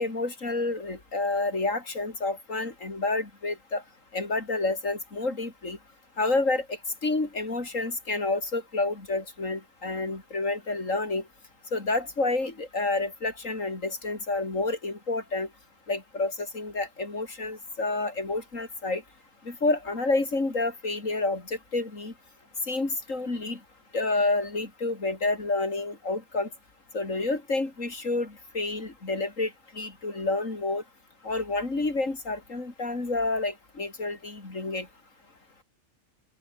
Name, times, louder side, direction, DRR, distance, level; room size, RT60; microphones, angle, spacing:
voice 1, 0.0-3.8 4.1-5.8 6.2-11.2 11.7-15.5 15.9-19.0 19.4-22.1 22.7-23.6 23.9-26.5 26.9-30.8 31.2-34.9, left 2 dB, 75° left, 4.7 m, -29 dB
open air
omnidirectional pair, 1.3 m